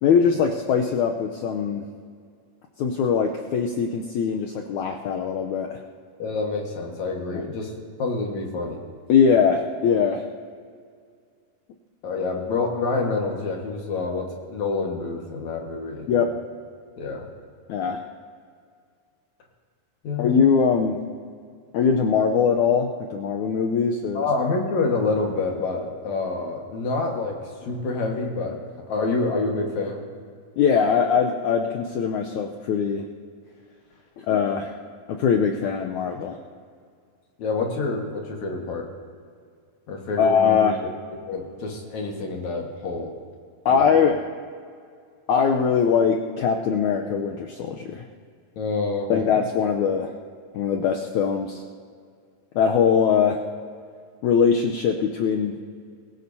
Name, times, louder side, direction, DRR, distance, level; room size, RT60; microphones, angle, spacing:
voice 1, 0.0-1.8 2.8-5.8 7.3-7.4 9.1-10.2 16.1-16.3 17.7-18.0 20.2-21.0 21.7-24.3 30.6-33.0 34.2-34.7 35.1-36.4 40.2-40.8 43.6-44.2 45.3-48.0 49.1-50.1 50.5-51.6 52.5-53.4 54.2-55.5, left 6 dB, 85° left, 2 dB, 1.7 m, -21 dB
voice 2, 6.2-7.7 8.0-8.8 12.0-16.3 17.0-17.3 20.0-20.3 24.1-28.6 28.9-30.0 37.4-38.9 39.9-40.9 41.3-43.1 43.7-43.9 48.6-49.1, left 3 dB, 55° left, 1 dB, 2.6 m, -27 dB
23.0 x 16.0 x 2.7 m, 2.1 s
omnidirectional pair, 4.3 m